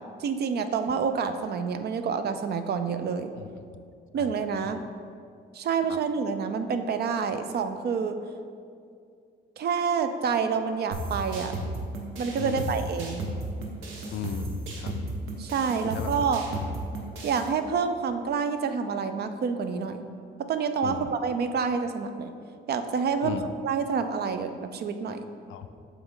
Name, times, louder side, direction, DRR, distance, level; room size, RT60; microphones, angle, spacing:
voice 1, 0.2-3.3 4.1-4.8 5.5-8.2 9.6-11.5 12.2-13.2 15.4-16.4 17.2-20.0 20.4-22.3 22.7-23.4 23.6-25.2, right 6 dB, 55° right, 8 dB, 0.4 m, -28 dB
voice 2, 3.4-3.7 4.1-4.3 4.6-4.8 5.9-6.0 12.4-12.9 14.1-14.9 15.8-16.2 20.8-21.1 23.2-23.5 25.5-25.7, left 9 dB, 80° left, 9 dB, 0.4 m, -36 dB
sound 1, 10.9-17.5, right 1 dB, 80° right, 0.9 m, -34 dB
7.5 x 3.5 x 3.7 m, 2.4 s
cardioid pair, 90°, 20 cm